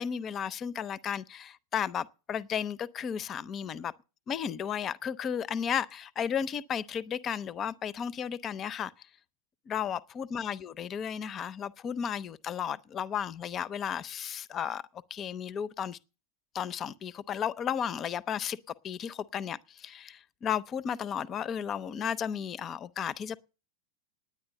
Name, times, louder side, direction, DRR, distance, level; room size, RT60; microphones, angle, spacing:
voice 1, 0.0-3.9 4.3-8.9 9.7-14.8 15.1-16.0 16.5-18.6 18.8-23.4, left 8 dB, 25° left, 0.6 m, -34 dB
9.9 x 9.6 x 6.6 m
figure-of-eight pair, 90°, 0 cm